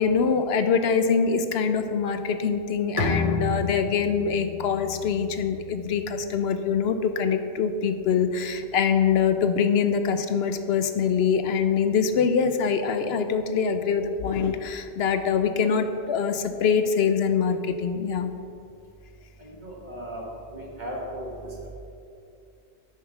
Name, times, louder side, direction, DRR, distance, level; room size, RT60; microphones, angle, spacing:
voice 1, 0.0-18.3, left 6 dB, 70° left, 9 dB, 0.8 m, -24 dB
Bowed string instrument, 3.0-6.4, left 4 dB, 35° left, 1.0 m, -31 dB
voice 2, 19.4-20.2 20.5-21.3, equal, 45° right, -3 dB, 1.9 m, -36 dB
9.4 x 6.4 x 5.7 m, 2.5 s
omnidirectional pair, 1.1 m